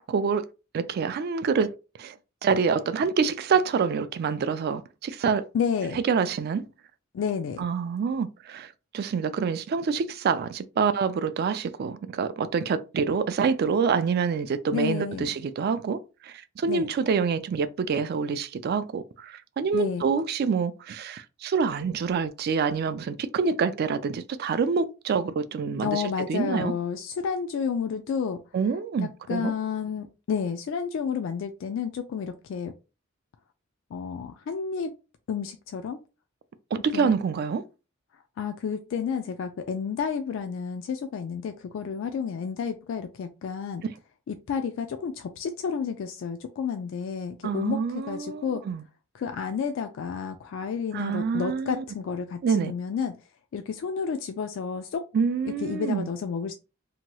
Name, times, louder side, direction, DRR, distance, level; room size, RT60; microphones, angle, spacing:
voice 1, 0.1-0.5 0.7-1.7 2.0-2.2 2.4-5.5 5.9-6.6 7.6-16.0 16.2-26.0 26.3-26.7 28.5-29.5 36.7-37.6 47.4-48.8 50.9-51.8 52.4-52.7 55.1-56.1, right 5 dB, 50° right, 0.3 m, -26 dB
voice 2, 5.5-6.0 7.1-7.6 14.7-15.3 16.7-16.9 19.7-20.1 25.8-28.4 29.0-32.7 33.9-34.9 35.3-36.0 36.9-37.1 38.4-43.8 44.3-48.6 49.1-53.2 53.5-55.0 55.6-56.5, left 6 dB, 65° left, 0.3 m, -31 dB
2.8 x 2.2 x 3.0 m
head